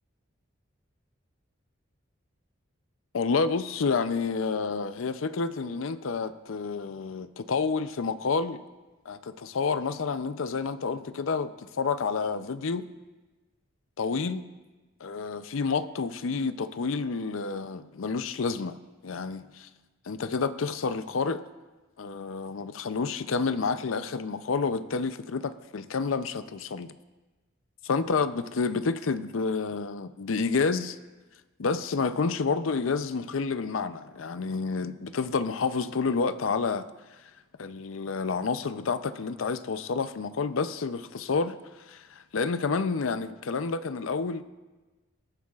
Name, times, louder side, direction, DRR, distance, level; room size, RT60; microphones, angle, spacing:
voice 1, 3.1-8.6 9.1-12.9 14.0-14.4 15.0-18.8 19.0-19.7 20.1-21.4 22.0-26.9 27.8-31.0 31.6-36.9 37.6-41.6 41.9-44.4, left 4 dB, 85° left, 0.5 m, -29 dB
20.5 x 9.5 x 2.4 m
head